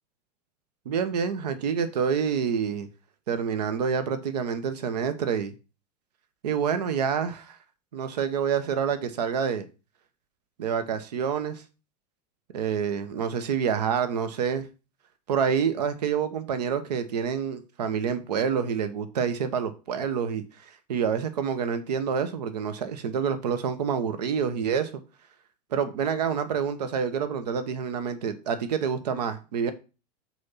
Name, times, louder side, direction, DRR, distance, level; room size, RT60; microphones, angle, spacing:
voice 1, 0.8-2.9 3.3-5.5 6.4-7.6 7.9-9.7 10.6-11.6 12.5-14.7 15.3-24.9 25.7-29.7, right 7 dB, 80° right, 1.1 m, -27 dB
6.3 x 4.4 x 5.6 m
hypercardioid pair, 110°, 21 cm